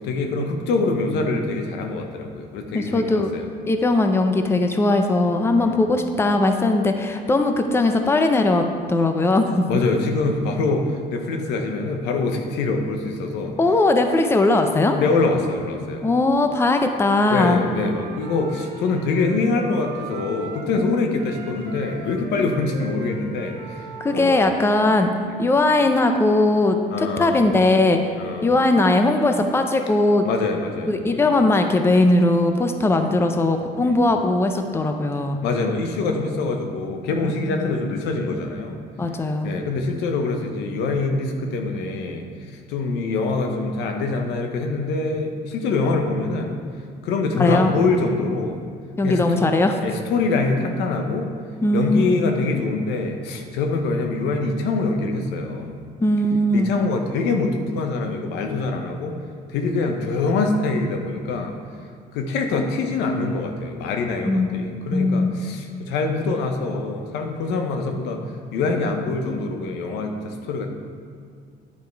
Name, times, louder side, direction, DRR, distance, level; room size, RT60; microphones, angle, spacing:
voice 1, 0.0-3.5 5.6-5.8 9.7-13.6 15.0-16.0 17.3-23.8 24.1-24.5 26.9-27.4 28.2-28.5 30.2-31.2 33.8-34.0 35.4-38.8 39.4-42.3 42.7-46.6 47.0-48.6 49.0-51.3 51.7-55.9 56.5-59.2 59.5-61.6 62.1-68.2 68.5-70.7, left 3 dB, 90° left, 4 dB, 0.9 m, -24 dB
voice 2, 2.7-3.3 3.7-9.7 13.6-15.0 16.0-17.6 20.9-21.0 24.0-25.1 25.4-28.1 28.4-30.3 30.9-35.4 37.5-37.6 39.0-39.5 47.3-47.7 49.0-49.8 51.6-52.3 56.0-56.7 64.3-64.6 64.9-65.4, left 2 dB, 15° left, 6 dB, 0.6 m, -19 dB
Wind instrument woodwind instrument, 17.2-20.8 21.1-25.1, right 3 dB, 85° right, 1.7 m, -39 dB
9.8 x 5.2 x 4.6 m, 2.1 s
cardioid pair, 110°, 17 cm